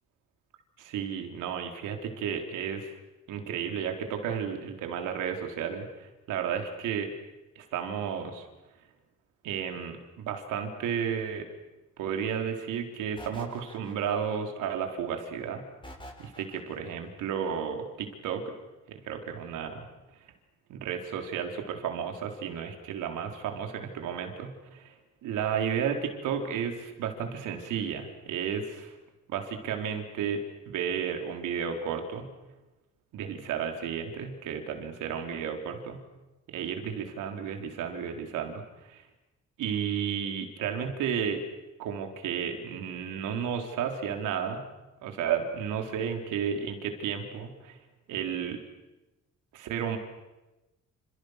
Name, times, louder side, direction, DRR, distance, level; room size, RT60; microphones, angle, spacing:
voice 1, 0.8-2.9 3.3-7.1 7.6-8.4 9.4-11.5 12.0-15.6 16.2-18.4 19.0-19.8 20.7-24.9 25.2-29.0 29.3-32.3 33.1-36.0 36.5-39.0 39.6-41.4 41.8-44.6 45.0-47.8 48.1-48.6 49.5-50.0, right 7 dB, 90° right, 4 dB, 4.2 m, -33 dB
sound 1, 13.2-14.4 15.8-16.9, left 1 dB, 15° left, 7.7 m, -47 dB
29.0 x 28.5 x 6.7 m, 1.1 s
cardioid pair, 90°, 30 cm